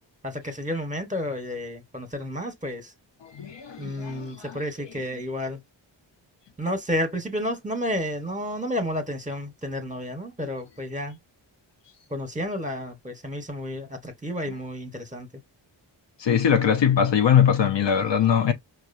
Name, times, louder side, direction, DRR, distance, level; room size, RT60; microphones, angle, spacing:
voice 1, 0.2-2.9 3.8-5.6 6.6-11.2 12.1-15.3, left 1 dB, 15° right, 1.3 m, -31 dB
voice 2, 3.2-4.6 16.2-18.5, left 8 dB, 60° left, 0.8 m, -21 dB
4.7 x 2.4 x 2.6 m
cardioid pair, 45°, 49 cm